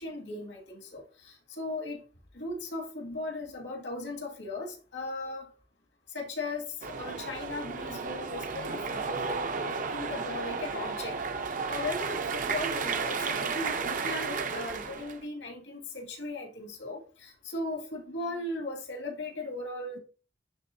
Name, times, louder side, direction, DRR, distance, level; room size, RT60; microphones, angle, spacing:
voice 1, 0.0-2.0 2.3-5.4 6.1-11.2 11.7-20.0, left 2 dB, 85° left, 2.3 m, -37 dB
sound 1, 6.8-15.2, right 5 dB, 45° right, 0.6 m, -33 dB
10.5 x 3.6 x 2.7 m
head